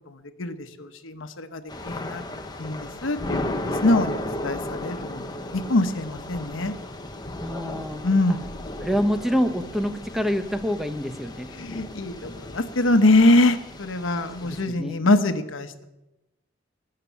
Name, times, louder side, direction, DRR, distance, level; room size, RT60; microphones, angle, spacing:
voice 1, 0.1-2.2 2.6-5.2 5.5-6.7 8.0-8.5 11.6-15.9, left 2 dB, 80° left, 9 dB, 1.0 m, -23 dB
Thunder / Rain, 1.7-14.7, left 1 dB, 20° left, 1.0 m, -35 dB
voice 2, 7.4-8.0 8.3-8.4 8.8-11.5 14.3-15.0, equal, ahead, 7 dB, 0.8 m, -26 dB
20.0 x 6.8 x 7.3 m, 1.0 s
head